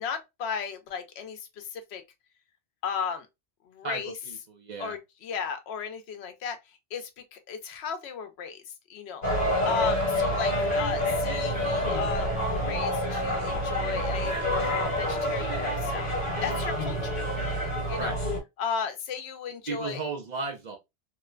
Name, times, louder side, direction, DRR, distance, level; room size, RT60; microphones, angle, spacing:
voice 1, 0.0-2.0 2.8-3.3 3.6-4.2 4.8-17.1 17.9-18.2 18.6-20.0, left 6 dB, 80° left, 0.9 m, -35 dB
voice 2, 4.3-4.9 18.0-18.1 19.7-20.8, right 4 dB, 50° right, 0.6 m, -34 dB
sound 1, 9.2-18.4, equal, 50° left, 1.3 m, -28 dB
3.0 x 2.1 x 2.2 m
omnidirectional pair, 1.1 m